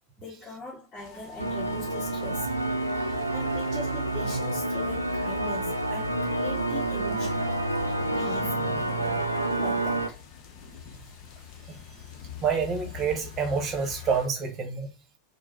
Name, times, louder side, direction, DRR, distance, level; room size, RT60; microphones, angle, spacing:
voice 1, 0.2-2.5 3.3-7.7 8.1-8.6 9.6-10.2, left 2 dB, 15° left, 1.9 m, -41 dB
sound 1, 1.0-14.3, left 6 dB, 40° left, 0.9 m, -45 dB
sound 2, 1.4-10.1, right 2 dB, 90° right, 0.5 m, -28 dB
voice 2, 12.4-14.9, right 6 dB, 25° right, 1.0 m, -28 dB
4.6 x 2.1 x 4.1 m
figure-of-eight pair, 90°, 0 cm